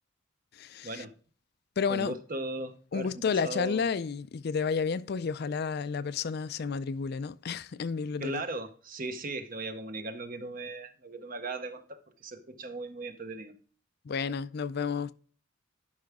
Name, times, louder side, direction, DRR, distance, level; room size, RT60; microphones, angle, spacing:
voice 1, 0.5-1.0 1.8-2.1 2.9-8.4 14.1-15.1, left 5 dB, 50° left, 0.4 m, -31 dB
voice 2, 1.9-3.8 8.2-13.6, right 2 dB, 45° right, 0.9 m, -38 dB
11.5 x 5.7 x 3.6 m
head